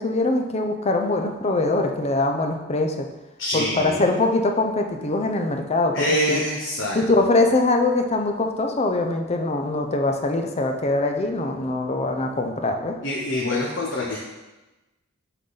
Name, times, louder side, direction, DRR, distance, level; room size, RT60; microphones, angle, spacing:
voice 1, 0.0-3.1 3.5-6.4 6.9-13.0, left 2 dB, 30° left, 4 dB, 0.6 m, -23 dB
voice 2, 3.4-4.1 5.9-7.0 13.0-14.2, left 1 dB, 65° left, -4 dB, 1.0 m, -25 dB
8.1 x 3.9 x 4.0 m, 1.1 s
head